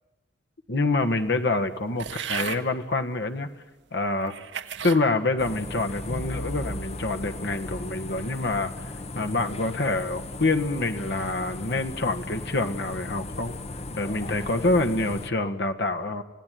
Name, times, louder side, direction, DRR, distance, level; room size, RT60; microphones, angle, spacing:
voice 1, 0.7-3.5 3.9-4.3 4.8-8.8 9.1-13.6 14.0-16.2, left 2 dB, 65° left, 7 dB, 1.6 m, -26 dB
sound 1, 2.0-2.6 3.4-3.5 4.2-5.0 5.6-6.0, right 7 dB, 75° right, 1.3 m, -34 dB
sound 2, 5.4-15.3, left 2 dB, 35° left, 1.1 m, -36 dB
29.0 x 16.5 x 9.4 m, 1.1 s
head